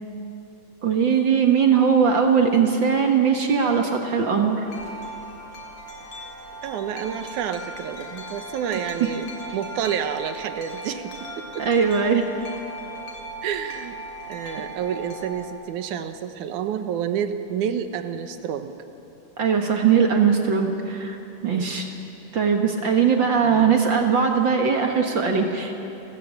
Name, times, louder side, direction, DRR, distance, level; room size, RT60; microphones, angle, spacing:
voice 1, 0.8-4.7 8.7-8.8 11.6-12.2 19.4-21.2 21.4-21.9 22.3-25.7, right 6 dB, 50° right, 3 dB, 1.8 m, -20 dB
Wind chime, 4.7-15.5, right 1 dB, 60° left, 3.9 m, -38 dB
voice 2, 6.6-11.7 13.4-14.0 14.3-18.7 21.4-21.7 23.4-23.7, right 8 dB, 90° right, 9 dB, 2.5 m, -29 dB
29.0 x 14.5 x 8.7 m, 2.9 s
omnidirectional pair, 3.5 m